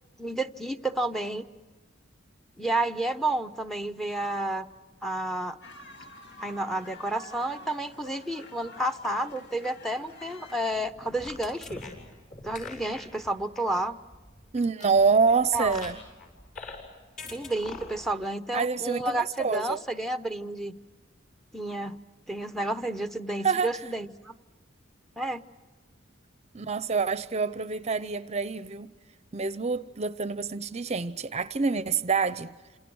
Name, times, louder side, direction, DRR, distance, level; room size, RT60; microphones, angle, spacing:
voice 1, 0.2-1.4 2.6-4.7 5.0-5.6 6.4-11.8 12.4-14.0 15.5-15.8 17.3-20.8 21.5-22.0 22.3-24.3 25.2-25.4, right 1 dB, ahead, 0.9 m, -31 dB
sound 1, 5.6-10.8, left 1 dB, 60° left, 2.4 m, -48 dB
sound 2, 10.7-16.8 17.2-18.2, left 3 dB, 45° left, 7.3 m, -44 dB
voice 2, 14.5-16.0 18.5-19.8 23.4-23.7 26.5-28.9 29.3-32.5, right 5 dB, 35° right, 0.8 m, -26 dB
28.5 x 27.5 x 6.3 m
head